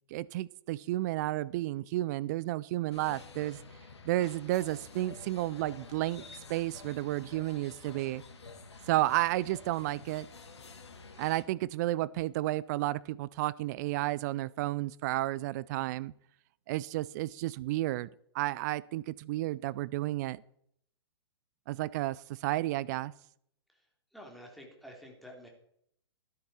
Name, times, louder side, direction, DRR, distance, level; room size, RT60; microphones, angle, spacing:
voice 1, 0.1-3.6 4.1-8.2 8.9-10.3 11.2-16.1 16.7-18.1 18.3-20.4 21.7-23.1, right 16 dB, 40° right, 21 dB, 0.4 m, -32 dB
sound 1, 2.9-11.4, left 4 dB, 70° left, 2.1 m, -50 dB
voice 2, 24.1-25.5, equal, ahead, 0 dB, 3.2 m, -49 dB
13.0 x 12.0 x 4.3 m, 0.70 s
figure-of-eight pair, 115°, 15 cm